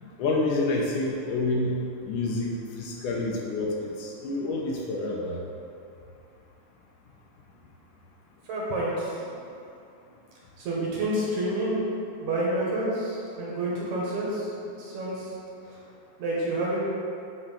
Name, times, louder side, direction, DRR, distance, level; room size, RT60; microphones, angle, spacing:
voice 1, 0.0-1.8 2.0-5.4, left 2 dB, 75° left, -1 dB, 2.1 m, -28 dB
voice 2, 8.5-9.3 10.6-11.8 12.2-14.5 14.8-15.3 15.6-15.8 16.2-16.8, right 1 dB, 65° right, -5 dB, 2.4 m, -29 dB
8.7 x 3.9 x 5.6 m, 2.6 s
omnidirectional pair, 4.0 m